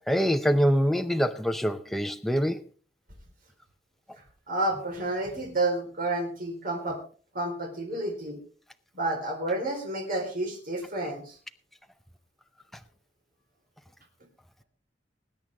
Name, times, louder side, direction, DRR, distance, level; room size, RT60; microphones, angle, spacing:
voice 1, 0.0-2.7, equal, ahead, 0.6 m, -25 dB
voice 2, 4.5-7.0 7.3-8.4 8.9-11.4, right 2 dB, 50° right, 4.2 m, -30 dB
20.5 x 9.1 x 3.6 m
head